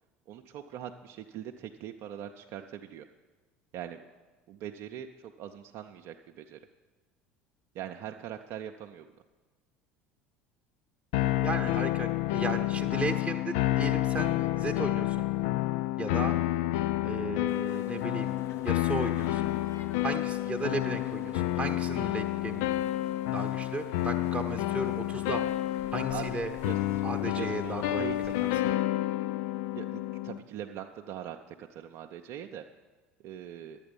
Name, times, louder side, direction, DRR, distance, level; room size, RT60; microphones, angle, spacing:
voice 1, 0.3-3.1 3.7-4.0 4.5-6.6 7.7-9.1 17.9-18.0 26.1-26.3 26.6-27.0 27.3-28.8 29.7-32.6 33.2-33.8, right 10 dB, 55° right, 3 dB, 0.5 m, -42 dB
sound 1, 11.1-30.4, left 15 dB, 65° left, 0.4 m, -29 dB
voice 2, 11.4-15.3 16.0-16.3 17.0-18.3 18.6-19.5 20.0-22.7 23.3-25.4 25.9-26.5 27.0-28.1, right 3 dB, 15° right, 3 dB, 0.8 m, -35 dB
sound 2, 17.5-28.6, left 5 dB, 45° left, 0.9 m, -51 dB
11.0 x 8.9 x 5.3 m, 1.3 s
hypercardioid pair, 70°, 6 cm